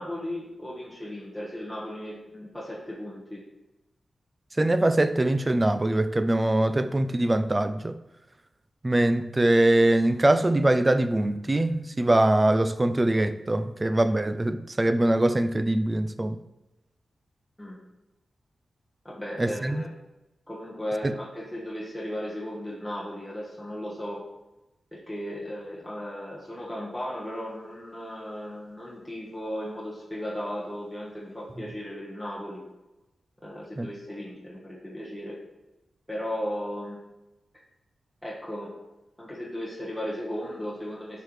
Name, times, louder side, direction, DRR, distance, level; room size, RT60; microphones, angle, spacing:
voice 1, 0.0-3.4 17.6-17.8 19.0-19.9 20.5-24.2 24.9-32.6 33.4-35.4 36.1-37.0 38.2-38.7 39.2-41.2, equal, ahead, 1.3 m, -36 dB
voice 2, 4.6-8.0 8.8-16.4 19.4-19.8 21.0-21.1 33.8-33.9, right 1 dB, 20° right, 0.4 m, -23 dB
11.0 x 5.1 x 3.2 m
wide cardioid pair, 125°, 0 cm